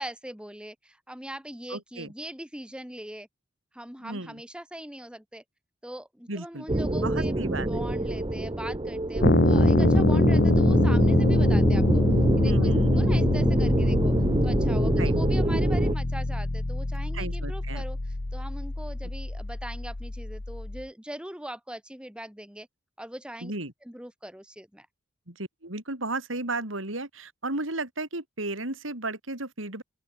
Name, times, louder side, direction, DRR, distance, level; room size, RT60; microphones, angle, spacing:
voice 1, 0.0-3.3 3.7-5.4 5.8-7.4 7.7-12.0 12.4-14.1 14.4-18.0 18.3-22.7 23.0-23.5 23.8-24.9, right 1 dB, 5° right, 2.7 m, -41 dB
voice 2, 1.7-2.1 4.0-4.4 6.3-6.7 7.0-7.7 12.4-13.1 15.0-15.1 17.1-17.8 23.4-23.7 25.3-29.8, right 2 dB, 85° right, 5.1 m, -34 dB
sound 1, 6.7-16.0, right 1 dB, 25° right, 1.0 m, -25 dB
sound 2, 9.2-20.8, left 2 dB, 55° left, 1.1 m, -25 dB
open air
head